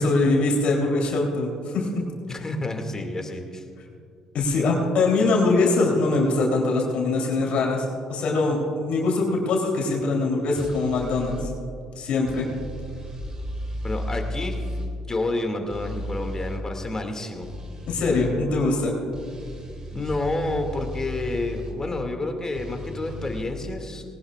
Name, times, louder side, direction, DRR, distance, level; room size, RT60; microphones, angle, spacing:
voice 1, 0.0-2.0 2.4-2.5 4.3-7.8 8.1-11.5 11.9-12.5 17.9-18.9, left 3 dB, 60° left, -1 dB, 3.3 m, -22 dB
voice 2, 2.3-3.6 13.8-14.6 15.1-17.5 19.9-24.0, left 2 dB, 25° left, 4 dB, 2.2 m, -29 dB
sound 1, 10.5-11.5 12.3-14.9 15.7-16.6 17.4-18.3 19.1-21.8 22.5-23.4, left 1 dB, 35° right, 2.9 m, -34 dB
20.0 x 18.5 x 2.4 m, 2.5 s
hypercardioid pair, 55°, 2 cm